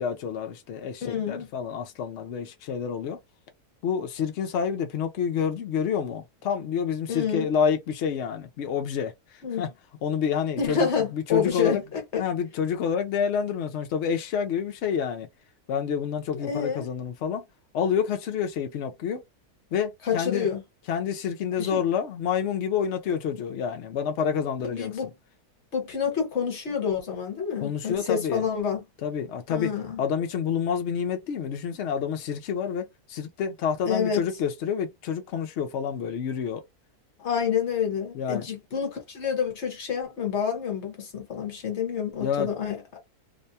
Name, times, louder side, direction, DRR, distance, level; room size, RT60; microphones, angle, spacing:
voice 1, 0.0-3.2 3.8-9.1 9.6-9.7 10.0-11.8 12.2-15.3 15.7-17.4 17.7-19.2 19.7-20.5 20.9-24.9 27.6-28.4 29.0-29.7 30.0-36.6 38.1-38.5 42.2-42.5, left 7 dB, 75° left, 0.6 m, -28 dB
voice 2, 1.0-1.5 7.1-7.5 9.4-9.7 10.6-12.2 16.3-16.9 20.1-20.6 21.6-21.8 24.6-25.1 25.7-28.8 29.5-30.0 33.8-34.2 37.2-43.0, left 7 dB, 50° left, 1.3 m, -28 dB
2.7 x 2.2 x 2.7 m
omnidirectional pair, 1.7 m